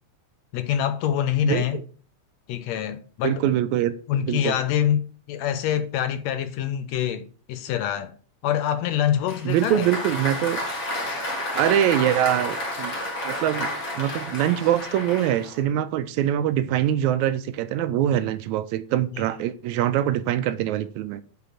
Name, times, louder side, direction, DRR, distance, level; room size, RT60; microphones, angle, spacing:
voice 1, 0.5-1.8 2.5-3.5 4.1-8.1 8.4-9.9 19.1-19.2, left 10 dB, 75° left, 1.8 m, -25 dB
voice 2, 3.2-3.9 4.3-4.5 9.5-10.6 11.5-12.9 13.2-21.2, right 11 dB, 85° right, 2.0 m, -23 dB
Applause, 9.3-15.6, left 1 dB, 40° left, 2.1 m, -31 dB
8.2 x 3.8 x 5.8 m
omnidirectional pair, 3.3 m